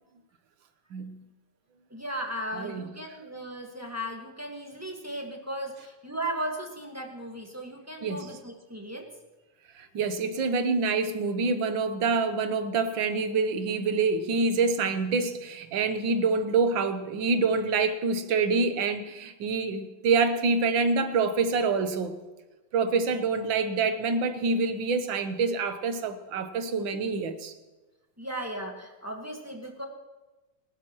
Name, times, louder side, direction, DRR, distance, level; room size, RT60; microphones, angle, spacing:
voice 1, 1.9-9.1 28.2-29.9, right 1 dB, 10° right, 1 dB, 1.5 m, -36 dB
voice 2, 9.8-22.2 22.7-27.5, right 4 dB, 85° right, 9 dB, 1.8 m, -26 dB
22.0 x 12.0 x 3.1 m, 1.1 s
omnidirectional pair, 2.0 m